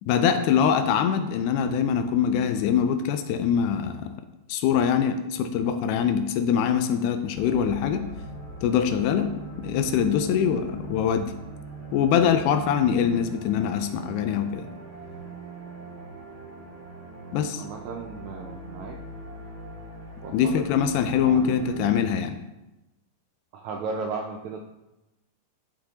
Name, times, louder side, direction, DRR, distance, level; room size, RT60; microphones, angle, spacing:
voice 1, 0.0-4.1 4.5-8.0 8.6-9.3 9.6-11.3 11.9-14.7 17.3-17.6 20.3-22.4, left 8 dB, 80° left, 8 dB, 1.8 m, -23 dB
sound 1, 7.3-21.9, right 2 dB, 40° right, 1.6 m, -41 dB
voice 2, 17.6-19.0 20.2-20.3 21.2-21.6 23.5-24.6, right 4 dB, 80° right, 1 dB, 1.7 m, -35 dB
8.7 x 5.8 x 2.8 m, 0.98 s
omnidirectional pair, 3.9 m